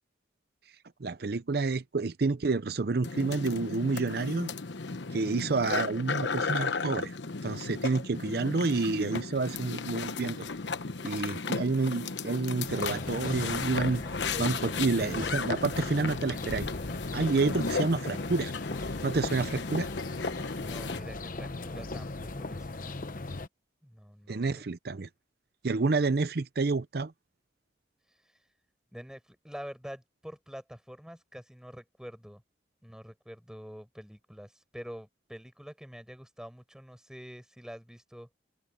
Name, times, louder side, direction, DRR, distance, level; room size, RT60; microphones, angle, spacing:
voice 1, 1.0-4.5 5.1-7.2 7.4-10.4 11.0-14.0 14.4-16.7 17.1-18.5 19.0-19.9 24.3-25.1 25.6-27.1, right 3 dB, 60° right, 0.6 m, -29 dB
sound 1, 3.0-21.0, left 4 dB, 80° left, 1.0 m, -35 dB
sound 2, 9.5-22.5, equal, 75° right, 7.6 m, -57 dB
sound 3, 12.6-23.5, left 2 dB, 50° left, 0.9 m, -38 dB
voice 2, 20.6-23.0 23.8-24.6 28.9-32.4 32.8-38.3, equal, 5° right, 5.4 m, -46 dB
open air
head